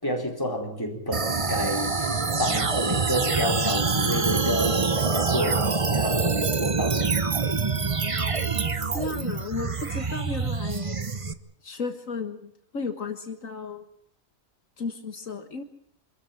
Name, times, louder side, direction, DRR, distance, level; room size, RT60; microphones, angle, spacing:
voice 1, 0.0-2.1 2.4-7.2, equal, 15° left, 1 dB, 4.3 m, -29 dB
sound 1, 1.1-11.3, right 4 dB, 25° right, 1.0 m, -26 dB
sound 2, 3.7-9.4, right 6 dB, 90° right, 2.1 m, -34 dB
voice 2, 8.9-11.0 11.6-13.8 14.8-15.6, left 4 dB, 70° left, 7 dB, 2.0 m, -34 dB
26.0 x 14.0 x 9.7 m, 0.66 s
omnidirectional pair, 1.4 m